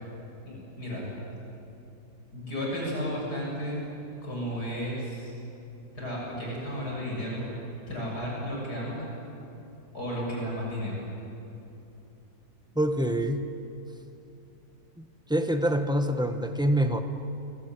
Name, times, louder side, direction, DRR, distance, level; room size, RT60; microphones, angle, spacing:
voice 1, 0.4-1.1 2.3-3.8 4.2-5.3 6.0-7.4 7.9-9.1 9.9-11.0, equal, 55° left, -4 dB, 7.8 m, -33 dB
voice 2, 12.7-13.6 15.0-17.0, right 1 dB, 5° right, 6 dB, 1.1 m, -26 dB
29.0 x 22.5 x 9.2 m, 2.8 s
omnidirectional pair, 2.0 m